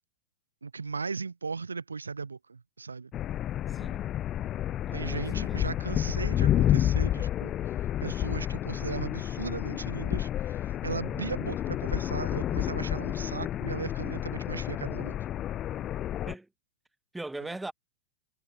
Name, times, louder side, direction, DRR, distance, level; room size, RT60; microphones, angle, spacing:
voice 1, 0.6-3.1 4.9-7.5 8.0-15.2 17.4-17.5, right 4 dB, 75° right, 0.7 m, -37 dB
sound 1, 3.1-16.3, left 12 dB, 30° left, 0.8 m, -30 dB
voice 2, 3.7-4.1 4.9-5.8 16.3-16.5 17.1-17.7, right 2 dB, 5° right, 1.3 m, -40 dB
figure-of-eight pair, 90°, 0 cm